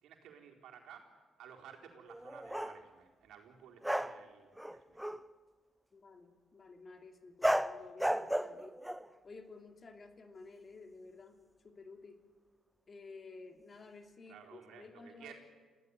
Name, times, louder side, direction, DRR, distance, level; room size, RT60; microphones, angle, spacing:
voice 1, 0.0-5.0 14.3-15.3, right 8 dB, 80° right, 1 dB, 4.3 m, -55 dB
sound 1, 2.1-2.8 3.8-4.2 4.6-5.3 7.4-9.1, equal, 5° right, 0.8 m, -34 dB
voice 2, 5.9-8.7 9.2-12.2 12.9-15.3, left 3 dB, 40° left, 6 dB, 2.8 m, -53 dB
27.0 x 16.0 x 9.9 m, 1.5 s
cardioid pair, 90°, 0 cm